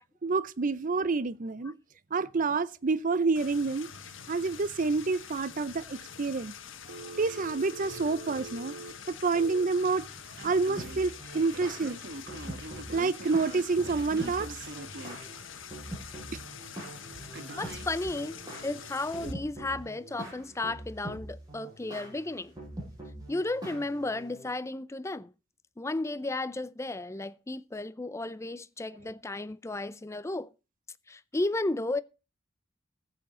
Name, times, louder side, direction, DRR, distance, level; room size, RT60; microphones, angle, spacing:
voice 1, 0.2-1.7 2.1-3.9 4.3-6.5 7.2-8.7 9.1-10.1 10.4-12.0 12.9-14.6 16.3-16.4, right 4 dB, 40° right, 0.5 m, -28 dB
sound 1, 3.3-19.3, left 7 dB, 75° left, 1.5 m, -46 dB
Telephone, 6.9-9.6 10.4-11.0 11.5-15.3 17.3-17.9, right 2 dB, 60° right, 1.4 m, -44 dB
sound 2, 10.8-24.5, right 1 dB, 20° right, 6.8 m, -44 dB
voice 2, 17.6-22.5 23.3-25.3 25.8-30.5 31.1-32.0, left 2 dB, 15° left, 0.4 m, -34 dB
15.0 x 7.9 x 3.8 m
head